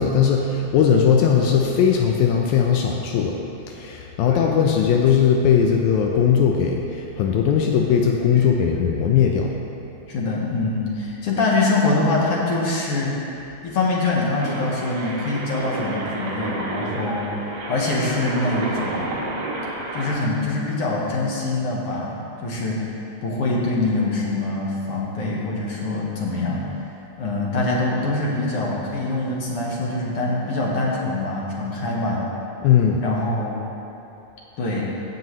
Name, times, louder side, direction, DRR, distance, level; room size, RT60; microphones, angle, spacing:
voice 1, 0.0-3.3 3.7-9.5 32.6-33.0, left 7 dB, 85° left, 1 dB, 1.9 m, -19 dB
voice 2, 8.8-9.3 10.1-13.1 13.6-17.3 17.7-19.2 19.9-22.2 22.4-22.9 23.2-26.6 27.2-32.2 33.0-33.6 34.6-34.8, left 2 dB, 60° left, -4 dB, 1.9 m, -24 dB
sound 1, 14.4-20.1, right 2 dB, 70° right, 0.9 m, -30 dB
16.0 x 5.5 x 3.1 m, 2.9 s
omnidirectional pair, 3.3 m